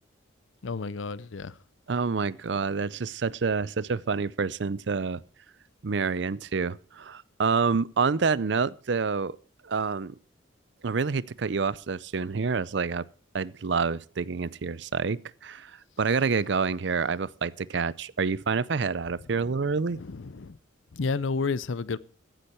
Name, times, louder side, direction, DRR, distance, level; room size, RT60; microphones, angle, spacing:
voice 1, 0.6-1.5 19.9-20.6 20.9-22.0, left 4 dB, 80° left, 0.6 m, -31 dB
voice 2, 1.9-5.2 5.8-9.4 9.6-10.2 10.8-13.0 13.3-15.7 16.0-20.0, right 5 dB, 60° right, 0.5 m, -28 dB
15.0 x 10.0 x 4.5 m
head